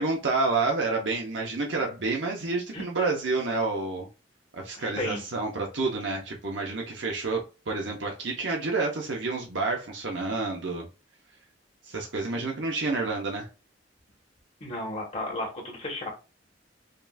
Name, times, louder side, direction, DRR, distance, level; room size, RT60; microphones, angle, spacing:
voice 1, 0.0-4.1 4.5-10.9 11.8-13.5, right 3 dB, 80° right, 0 dB, 0.9 m, -29 dB
voice 2, 4.8-5.2 12.4-12.5 14.6-16.1, left 1 dB, 40° left, -2 dB, 1.4 m, -34 dB
5.3 x 2.7 x 2.3 m, 0.30 s
head